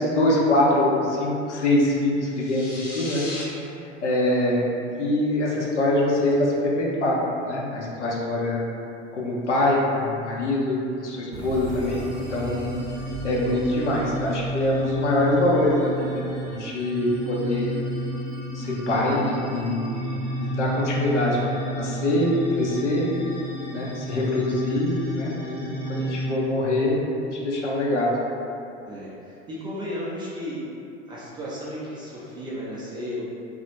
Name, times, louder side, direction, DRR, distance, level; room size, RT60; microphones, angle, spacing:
voice 1, 0.0-3.2 4.0-4.7 5.0-8.6 9.1-12.7 13.2-17.7 18.5-20.0 20.4-23.1 23.7-28.1, left 1 dB, 80° left, -3 dB, 0.5 m, -24 dB
sound 1, 2.3-3.4, left 2 dB, 50° left, 0.8 m, -36 dB
sound 2, 11.3-16.8, right 2 dB, 60° right, 0.8 m, -39 dB
sound 3, 11.8-26.3, right 1 dB, 20° left, 0.7 m, -32 dB
voice 2, 28.9-30.7 31.1-33.2, equal, 15° right, -7 dB, 0.3 m, -34 dB
2.3 x 2.0 x 2.9 m, 2.7 s
figure-of-eight pair, 75°, 35 cm